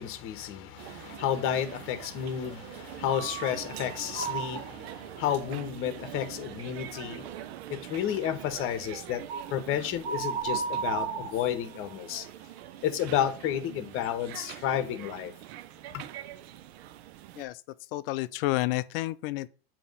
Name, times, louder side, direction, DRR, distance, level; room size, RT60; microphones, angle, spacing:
voice 1, 0.0-9.2 9.5-12.3 12.8-15.3 15.9-16.0, left 10 dB, 40° left, 1.0 m, -31 dB
sound 1, 0.8-17.4, right 13 dB, 75° right, 0.6 m, -44 dB
sound 2, 4.1-4.7 5.2-5.3 9.3-9.6 10.0-11.9, right 6 dB, 40° right, 1.2 m, -33 dB
voice 2, 17.9-19.5, left 18 dB, 60° left, 0.4 m, -30 dB
6.8 x 3.0 x 5.3 m
supercardioid pair, 130°, 32 cm